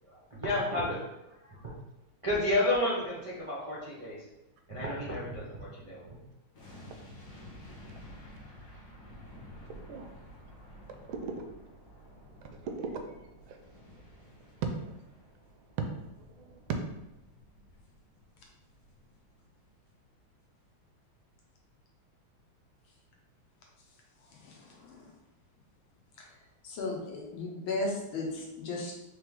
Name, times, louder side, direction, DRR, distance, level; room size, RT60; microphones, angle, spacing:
voice 1, 0.0-1.0 1.4-1.7 2.2-4.2 4.7-6.2, left 1 dB, 35° right, -8 dB, 0.5 m, -31 dB
sound 1, 6.5-19.7 20.0-20.1, equal, 55° left, 1.5 m, -52 dB
voice 2, 11.1-11.4 12.2-14.9 16.2-16.8, right 5 dB, 80° right, 5 dB, 1.4 m, -39 dB
voice 3, 24.3-25.1 26.2-26.4 26.6-29.0, left 2 dB, 75° left, -1 dB, 1.7 m, -36 dB
4.2 x 3.4 x 3.6 m, 0.95 s
omnidirectional pair, 2.3 m